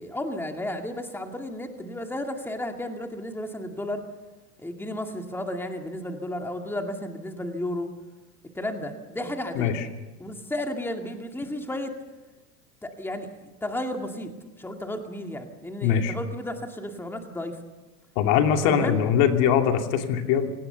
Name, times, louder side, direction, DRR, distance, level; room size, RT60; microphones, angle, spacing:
voice 1, 0.0-4.0 4.6-7.9 8.6-9.8 10.2-11.9 12.8-13.3 13.6-14.3 14.6-17.6 18.6-19.0, left 1 dB, 5° left, 4 dB, 2.1 m, -33 dB
voice 2, 9.5-9.9 15.8-16.1 18.2-20.5, left 8 dB, 55° left, 5 dB, 2.8 m, -22 dB
25.5 x 18.0 x 6.9 m, 1.1 s
hypercardioid pair, 110°, 47 cm